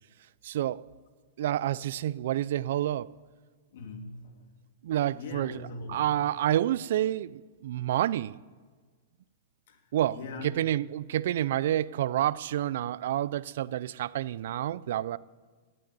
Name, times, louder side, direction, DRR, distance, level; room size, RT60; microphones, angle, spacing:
voice 1, 0.4-0.8 1.4-3.1 4.8-5.6 5.9-8.4 9.9-15.2, right 12 dB, 65° right, 0.4 m, -29 dB
voice 2, 3.7-4.4 5.1-6.1 9.7-9.8 10.1-10.5, left 3 dB, 65° left, 2.8 m, -41 dB
17.5 x 7.8 x 9.5 m
hypercardioid pair, 135°, 0 cm